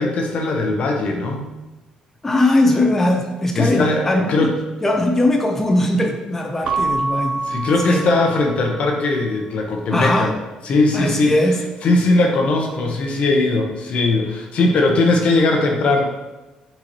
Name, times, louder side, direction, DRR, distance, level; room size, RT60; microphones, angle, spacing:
voice 1, 0.0-1.4 3.5-4.5 7.5-10.3 10.6-11.3 11.8-16.1, left 2 dB, 60° left, 2 dB, 0.8 m, -19 dB
voice 2, 2.2-4.5 4.8-7.4 7.8-8.1 9.9-10.3 10.9-11.6, left 1 dB, 15° left, 1 dB, 0.5 m, -19 dB
Keyboard (musical) / Bell, 6.6-9.1, right 3 dB, 60° right, 0.4 m, -26 dB
4.5 x 3.9 x 2.9 m, 1.1 s
cardioid pair, 100°, 2 cm